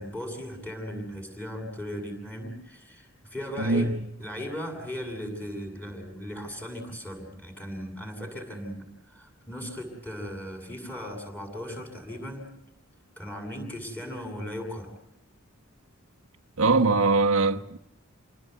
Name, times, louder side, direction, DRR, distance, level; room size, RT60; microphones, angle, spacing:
voice 1, 0.0-3.9 4.2-12.5 13.2-14.9, equal, 10° left, 8.0 m, -37 dB
voice 2, 3.6-4.0 16.6-17.8, right 3 dB, 85° right, 1.2 m, -22 dB
29.0 x 19.0 x 8.4 m
head